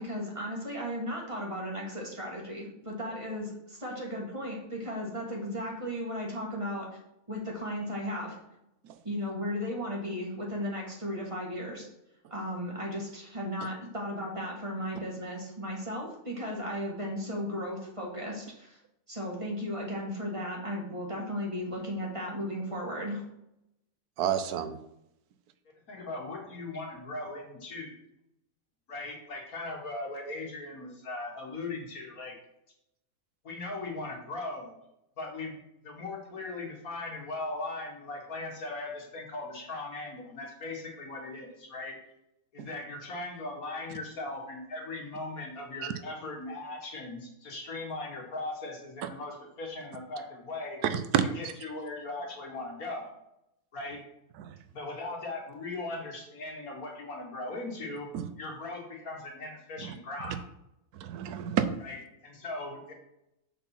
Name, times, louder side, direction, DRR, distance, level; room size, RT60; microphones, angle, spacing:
voice 1, 0.0-6.9 7.3-8.4 9.0-11.9 12.3-18.8 19.1-23.3, equal, 20° right, -2 dB, 1.8 m, -35 dB
voice 2, 24.2-24.8 42.6-42.7 45.8-45.9 50.9-51.2 54.4-54.5 58.1-58.2 61.0-61.7, right 9 dB, 85° right, 11 dB, 1.2 m, -29 dB
voice 3, 25.9-28.0 28.9-32.4 33.4-34.8 35.2-35.6 35.8-42.0 42.5-50.8 51.3-53.1 53.7-54.0 54.7-58.1 58.4-60.4 61.8-62.9, left 2 dB, 70° left, 0 dB, 2.2 m, -39 dB
7.0 x 4.1 x 5.9 m, 0.83 s
omnidirectional pair, 1.6 m